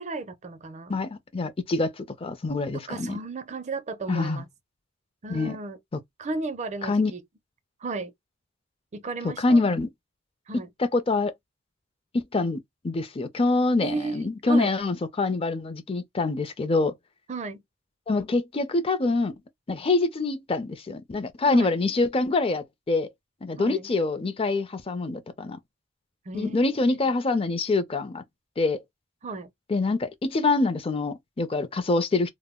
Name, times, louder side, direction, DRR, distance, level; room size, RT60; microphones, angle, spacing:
voice 1, 0.0-1.0 2.9-4.5 5.2-5.8 6.2-7.2 7.8-8.1 8.9-9.7 10.5-10.7 13.8-14.7 17.3-17.6 21.5-21.7 23.6-23.9 26.3-26.6 26.9-27.1 29.2-29.5, right 3 dB, 35° right, 0.5 m, -34 dB
voice 2, 0.9-3.2 4.1-4.4 5.3-5.6 6.8-7.1 9.4-9.9 10.9-11.3 12.1-12.6 12.8-16.9 18.1-19.3 19.7-23.1 23.4-25.6 26.3-28.2 28.6-28.8 29.7-32.3, left 3 dB, 30° left, 0.5 m, -25 dB
2.2 x 2.0 x 3.5 m
head